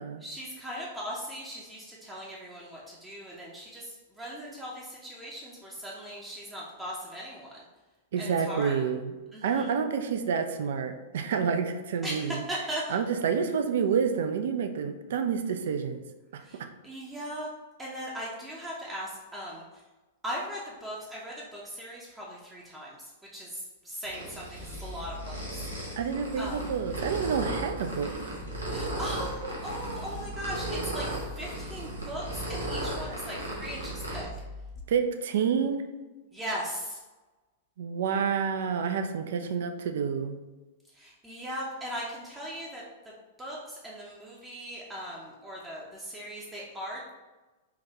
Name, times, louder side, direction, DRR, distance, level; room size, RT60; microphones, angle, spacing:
voice 1, 0.2-7.6 8.2-8.7 9.3-9.7 12.0-13.0 16.4-17.5 17.8-19.7 20.2-23.0 23.3-25.6 25.9-26.0 26.4-26.7 28.7-34.3 36.3-37.0 40.9-42.8 43.4-47.2, equal, 15° right, -5 dB, 0.6 m, -39 dB
voice 2, 8.1-9.1 9.4-12.4 12.9-16.0 16.3-16.7 26.0-28.2 34.9-35.9 37.8-40.4, right 6 dB, 60° right, 8 dB, 0.3 m, -29 dB
sound 1, 24.0-34.2, right 1 dB, 85° right, 0.8 m, -36 dB
sound 2, 24.6-34.8, left 1 dB, 45° left, 0.3 m, -43 dB
3.8 x 2.2 x 2.8 m, 1.2 s
figure-of-eight pair, 100°, 0 cm